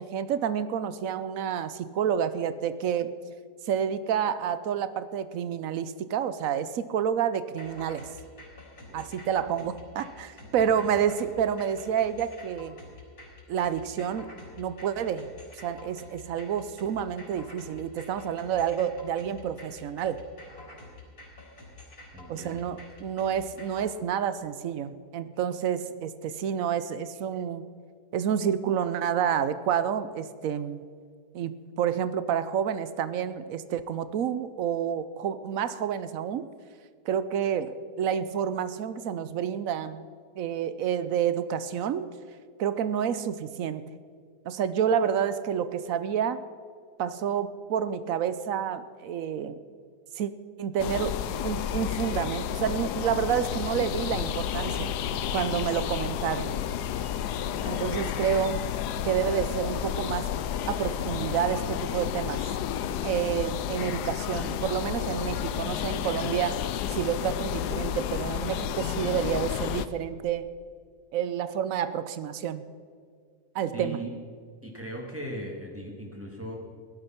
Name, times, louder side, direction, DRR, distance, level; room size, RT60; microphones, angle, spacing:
voice 1, 0.0-3.1 3.6-8.0 8.9-12.8 13.5-14.3 14.6-15.3 15.6-20.2 22.3-27.7 28.1-30.8 31.3-36.5 37.1-40.0 40.4-42.1 42.6-43.9 44.4-46.4 47.0-49.6 50.2-50.3 50.6-54.9 55.3-56.5 57.7-58.6 59.0-60.3 60.7-62.4 63.0-66.6 66.9-70.5 71.1-72.6 73.5-74.0, right 8 dB, 65° right, 13 dB, 1.0 m, -29 dB
sound 1, 7.6-23.8, left 2 dB, 70° left, 3.9 m, -48 dB
voice 2, 10.4-10.9 22.1-22.7 73.7-74.1 74.6-76.6, right 1 dB, 10° right, -1 dB, 2.2 m, -39 dB
sound 2, 50.8-69.9, left 10 dB, 90° left, 1.2 m, -31 dB
16.5 x 11.5 x 5.8 m, 2.1 s
omnidirectional pair, 1.7 m